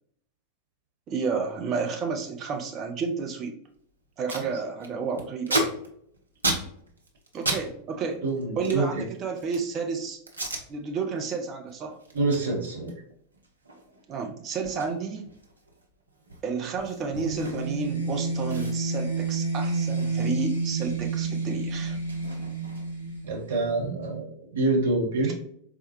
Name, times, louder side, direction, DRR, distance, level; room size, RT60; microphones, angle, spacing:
voice 1, 1.1-3.5 4.2-5.7 7.3-8.3 8.6-10.2 10.7-12.0 14.1-15.3 16.4-22.0, right 5 dB, 30° right, 3 dB, 0.5 m, -31 dB
Packing tape duct tape, 3.7-3.8 4.0-4.5 4.8-7.6 7.9-9.7 10.3-10.6 11.1-11.3 11.7-17.9 18.1-18.2 18.5-20.9 21.1-23.1, right 2 dB, 80° right, 0.6 m, -35 dB
voice 2, 8.2-8.9 12.1-12.9 23.2-25.3, right 2 dB, 60° right, -1 dB, 1.2 m, -26 dB
sound 1, 17.1-23.8, right 3 dB, 85° left, 0.9 m, -30 dB
4.2 x 2.2 x 3.0 m, 0.68 s
figure-of-eight pair, 90°, 0 cm